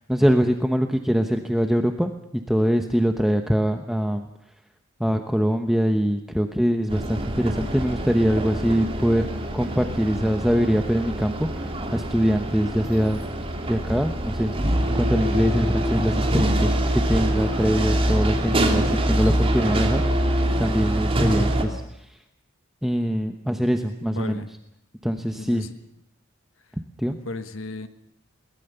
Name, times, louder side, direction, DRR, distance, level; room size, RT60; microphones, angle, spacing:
voice 1, 0.0-2.1 2.5-4.3 5.0-9.3 9.5-13.2 13.7-14.5 14.9-21.8 22.8-24.4 25.0-25.7 27.0-27.2, equal, ahead, 5 dB, 1.0 m, -23 dB
sound 1, 6.9-21.6, right 1 dB, 30° right, 3.1 m, -24 dB
voice 2, 24.1-24.5 25.4-25.7 27.2-27.9, left 2 dB, 85° left, 9 dB, 1.4 m, -34 dB
22.0 x 19.5 x 6.9 m, 0.82 s
head